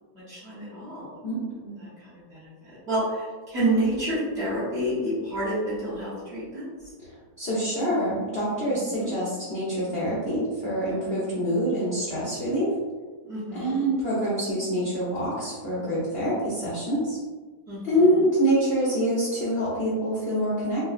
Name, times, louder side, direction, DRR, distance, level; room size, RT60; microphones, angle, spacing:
voice 1, 0.3-1.1 1.8-6.7 8.7-9.1 13.2-13.8 17.7-18.1, right 1 dB, 45° right, -10 dB, 1.0 m, -29 dB
voice 2, 1.2-1.7 7.0-12.7 13.5-17.2 17.8-20.8, equal, 70° left, -8 dB, 0.5 m, -26 dB
3.7 x 2.1 x 2.4 m, 1.4 s
omnidirectional pair, 1.9 m